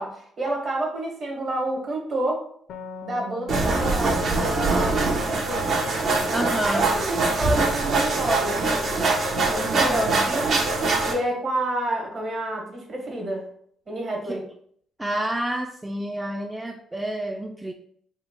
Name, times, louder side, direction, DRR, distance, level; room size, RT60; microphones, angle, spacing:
voice 1, 0.0-2.4 3.0-5.7 6.6-9.0 9.5-10.6 11.0-13.5 13.9-14.4, right 1 dB, 45° right, 0 dB, 1.3 m, -29 dB
sound 1, 2.7-6.2, left 2 dB, 80° left, 0.4 m, -43 dB
sound 2, 3.5-11.1, right 3 dB, 60° right, 0.8 m, -23 dB
voice 2, 6.3-6.9 9.7-10.3 14.3-14.4 15.0-17.7, right 1 dB, 10° right, 3 dB, 0.3 m, -29 dB
3.6 x 2.2 x 4.1 m, 0.63 s
cardioid pair, 90°, 0 cm